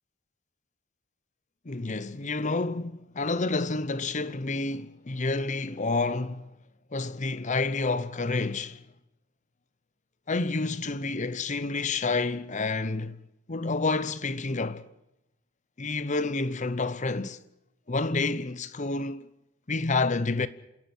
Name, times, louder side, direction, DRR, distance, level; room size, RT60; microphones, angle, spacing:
voice 1, 1.7-6.5 6.9-8.8 10.3-13.2 13.5-14.9 15.8-17.4 17.9-19.3 19.7-20.5, left 3 dB, 35° left, 0.8 m, -29 dB
28.0 x 12.0 x 9.2 m
head